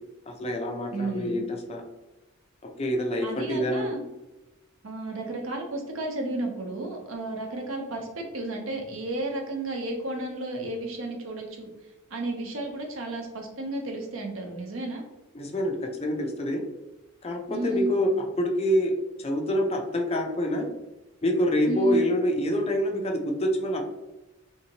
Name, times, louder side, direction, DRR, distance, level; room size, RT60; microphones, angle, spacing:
voice 1, 0.3-1.8 2.6-3.9 15.3-16.6 17.2-18.1 18.4-18.9 19.2-20.7 21.2-23.8, equal, 30° left, 2 dB, 0.5 m, -26 dB
voice 2, 0.9-1.4 3.2-4.0 4.8-11.7 12.1-15.0 17.5-17.9 21.7-22.0, right 2 dB, 75° right, 1 dB, 0.8 m, -32 dB
3.6 x 2.8 x 2.8 m, 1.0 s
head